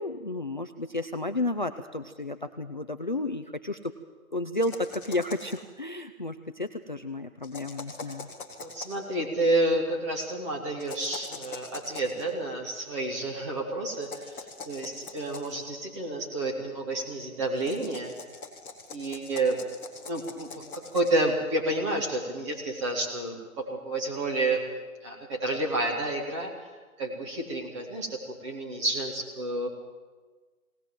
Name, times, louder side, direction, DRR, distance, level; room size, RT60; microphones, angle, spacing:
voice 1, 0.0-3.8 4.3-8.3, left 2 dB, 35° left, 9 dB, 0.5 m, -32 dB
sound 1, 4.6-5.7 7.4-9.0 10.8-12.2 14.0-15.6 17.5-21.2, left 4 dB, 5° left, 1.3 m, -43 dB
voice 2, 8.6-18.1 18.9-19.6 20.0-20.6 20.9-24.6 25.0-26.5 27.0-29.7, right 2 dB, 20° right, -1 dB, 3.0 m, -30 dB
21.0 x 18.5 x 7.5 m, 1.4 s
hypercardioid pair, 165°, 43 cm